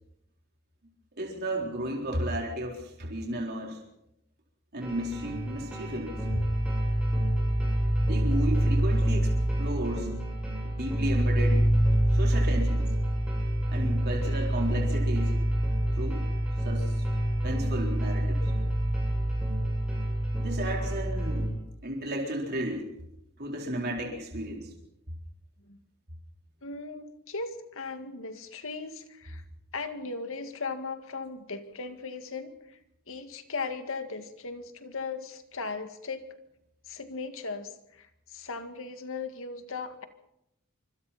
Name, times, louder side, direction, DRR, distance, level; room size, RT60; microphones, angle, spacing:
voice 1, 1.2-3.8 4.7-6.1 8.0-9.3 9.6-10.2 10.6-11.7 12.1-12.9 13.7-15.4 15.9-16.3 16.6-17.0 17.4-18.5 20.3-21.5 21.8-22.9 23.4-24.7, right 1 dB, 45° right, -1 dB, 4.0 m, -33 dB
sound 1, 4.8-21.5, right 1 dB, 5° right, 6.7 m, -27 dB
voice 2, 26.6-29.4 29.7-32.8 33.1-36.3 36.9-40.0, left 4 dB, 65° left, 7 dB, 2.0 m, -37 dB
25.5 x 24.5 x 4.3 m, 0.82 s
head